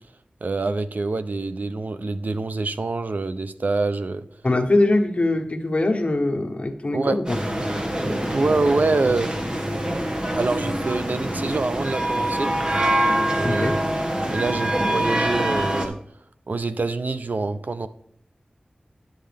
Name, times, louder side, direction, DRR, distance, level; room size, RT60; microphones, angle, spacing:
voice 1, 0.4-4.2 6.9-7.2 8.3-9.3 10.3-12.5 13.1-13.8 14.3-16.0 16.5-17.9, right 3 dB, 70° right, 11 dB, 0.6 m, -25 dB
voice 2, 4.4-7.4 13.4-13.8, left 2 dB, 45° left, 2 dB, 1.4 m, -22 dB
sound 1, 7.2-15.9, right 1 dB, 30° right, 1.9 m, -25 dB
10.5 x 7.6 x 3.5 m, 0.63 s
cardioid pair, 40°, 3 cm